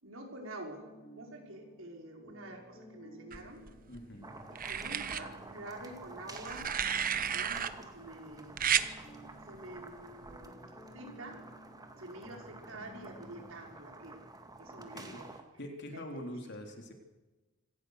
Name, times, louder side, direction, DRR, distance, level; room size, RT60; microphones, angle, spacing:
voice 1, 0.0-0.9 1.2-3.6 4.5-6.7 7.1-8.6 9.2-10.6 10.9-11.4 12.0-14.2 14.6-15.3 15.9-16.6, right 1 dB, 75° right, 2 dB, 5.5 m, -48 dB
sound 1, 0.8-13.5, right 1 dB, 20° left, 3.4 m, -55 dB
sound 2, 3.3-4.0 4.5-5.2 6.4-7.7 8.6-8.9 10.2-10.5, right 8 dB, 45° right, 1.0 m, -32 dB
voice 2, 3.9-4.4 14.9-16.9, equal, 60° left, 4 dB, 3.5 m, -44 dB
sound 3, 4.2-15.4, right 2 dB, 20° right, 2.2 m, -50 dB
26.5 x 17.5 x 6.6 m, 1.1 s
head